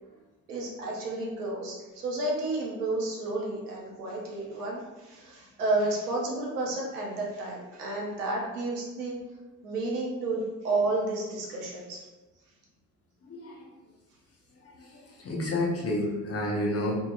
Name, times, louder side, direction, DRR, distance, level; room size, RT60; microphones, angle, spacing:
voice 1, 0.5-9.2 9.6-12.1, right 2 dB, 80° right, -2 dB, 0.7 m, -31 dB
voice 2, 13.3-13.7 14.8-14.9 15.2-17.0, left 1 dB, 30° left, -3 dB, 1.0 m, -30 dB
3.7 x 2.7 x 2.5 m, 1.2 s
figure-of-eight pair, 45°, 46 cm